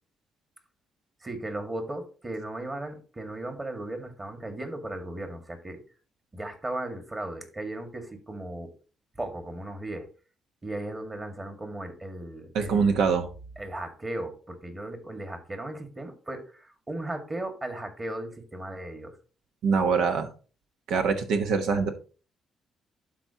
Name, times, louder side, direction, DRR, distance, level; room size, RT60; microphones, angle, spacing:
voice 1, 1.2-5.8 6.3-8.7 9.2-10.1 10.6-13.1 13.6-19.2, right 1 dB, 25° right, 5 dB, 1.9 m, -36 dB
voice 2, 12.5-13.3 19.6-20.3 20.9-21.9, right 5 dB, 85° right, 7 dB, 1.2 m, -24 dB
12.0 x 4.3 x 2.9 m, 0.37 s
cardioid pair, 90°, 0 cm